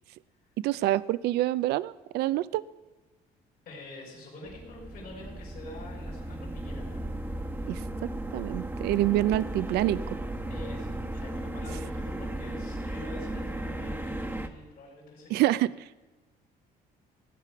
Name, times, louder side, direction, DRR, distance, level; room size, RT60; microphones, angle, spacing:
voice 1, 0.6-2.6 7.7-7.8 8.3-10.2 15.3-15.7, right 15 dB, 75° right, 17 dB, 0.4 m, -26 dB
voice 2, 3.6-7.0 10.5-15.6, left 2 dB, 60° left, -6 dB, 5.0 m, -46 dB
sound 1, 4.4-14.5, right 1 dB, 10° right, 1.1 m, -35 dB
18.0 x 9.4 x 5.8 m, 1.2 s
cardioid pair, 110°, 17 cm